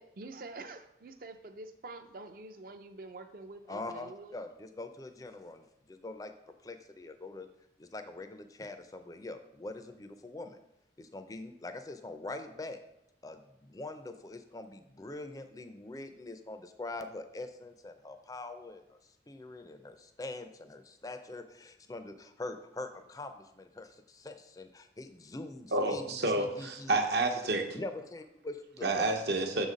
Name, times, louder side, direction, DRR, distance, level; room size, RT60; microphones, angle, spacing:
voice 1, 0.0-4.4, right 2 dB, 50° right, 8 dB, 0.5 m, -46 dB
voice 2, 3.7-6.3 6.6-7.5 7.8-10.6 11.0-12.8 13.2-26.9 27.7-29.1, left 2 dB, 20° left, 8 dB, 0.4 m, -43 dB
voice 3, 25.7-27.6 28.8-29.7, right 2 dB, 70° right, 4 dB, 0.9 m, -29 dB
6.5 x 4.0 x 5.0 m, 0.83 s
head